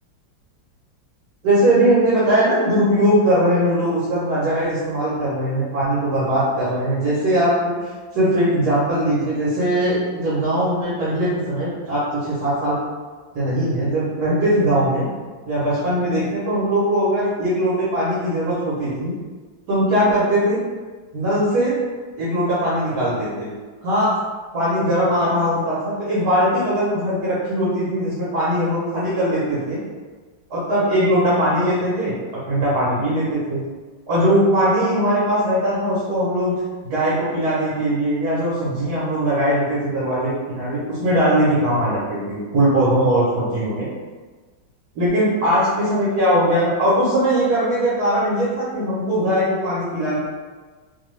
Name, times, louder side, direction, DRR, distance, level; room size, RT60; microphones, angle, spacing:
voice 1, 1.4-7.8 8.1-12.8 13.3-15.1 15.5-19.1 19.7-20.6 21.1-21.8 22.2-23.5 23.8-24.1 24.5-29.8 30.5-32.1 32.5-33.6 34.1-36.6 36.8-43.9 44.9-50.2, right 1 dB, 60° right, -8 dB, 1.2 m, -20 dB
3.0 x 2.3 x 3.1 m, 1.4 s
omnidirectional pair, 2.1 m